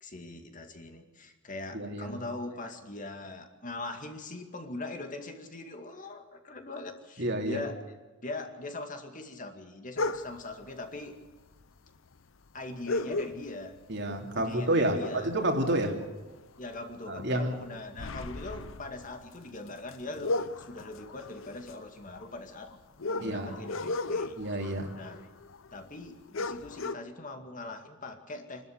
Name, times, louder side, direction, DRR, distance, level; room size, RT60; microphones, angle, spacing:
voice 1, 0.0-7.9 8.2-11.2 12.5-13.7 14.3-15.3 16.6-22.8 23.1-24.4 24.9-25.3 25.7-28.7, left 2 dB, 40° left, 5 dB, 2.2 m, -41 dB
voice 2, 1.7-2.2 7.2-7.6 13.9-16.0 17.1-17.6 23.2-23.6 24.4-24.9, right 1 dB, 55° right, 3 dB, 3.0 m, -29 dB
sound 1, 10.0-10.5 11.5-11.6 11.9-12.0 12.9-13.8 14.2-14.4 14.8-16.4 16.7-16.9 17.4-25.7 26.1-26.2 26.3-26.9, left 2 dB, 70° left, 0.8 m, -36 dB
26.5 x 13.0 x 8.2 m, 1.3 s
head